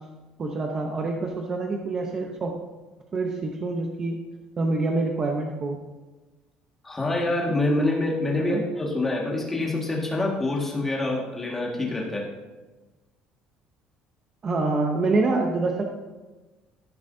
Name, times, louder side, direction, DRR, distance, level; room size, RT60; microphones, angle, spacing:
voice 1, 0.4-2.5 3.1-4.2 4.6-5.8 8.4-8.6 14.4-15.8, right 3 dB, 25° right, 2 dB, 0.7 m, -26 dB
voice 2, 6.8-12.2, left 2 dB, 10° left, -2 dB, 1.6 m, -26 dB
14.5 x 7.0 x 2.6 m, 1.2 s
cardioid pair, 175°, 3 cm